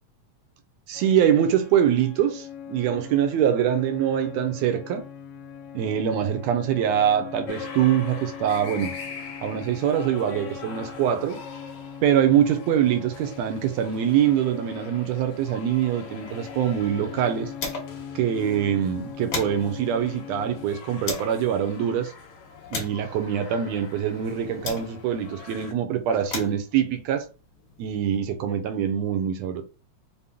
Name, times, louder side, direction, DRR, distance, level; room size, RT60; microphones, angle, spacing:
sound 1, 0.9-20.7, left 8 dB, 85° left, 2.1 m, -41 dB
voice 1, 0.9-5.0 5.7-8.9 9.4-11.4 12.0-17.5 18.2-22.1 22.7-27.3 27.8-29.6, right 9 dB, 80° right, 1.7 m, -24 dB
sound 2, 7.5-25.7, left 5 dB, 70° left, 2.0 m, -43 dB
sound 3, 16.3-18.1 18.4-18.5 18.9-21.4 22.0-25.2 26.0-28.2, left 4 dB, 50° left, 1.8 m, -38 dB
5.3 x 2.2 x 3.5 m
omnidirectional pair, 3.4 m